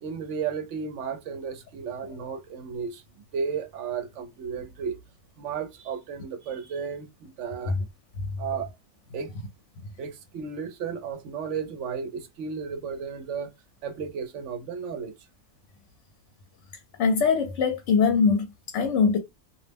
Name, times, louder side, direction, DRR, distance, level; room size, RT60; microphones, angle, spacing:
voice 1, 0.0-3.0 3.3-5.0 5.4-7.8 8.4-8.7 9.1-9.3 10.0-13.5 13.8-15.1, right 6 dB, 75° right, 0.9 m, -33 dB
voice 2, 17.0-19.2, left 5 dB, 70° left, 0.9 m, -22 dB
2.4 x 2.0 x 3.3 m
omnidirectional pair, 1.3 m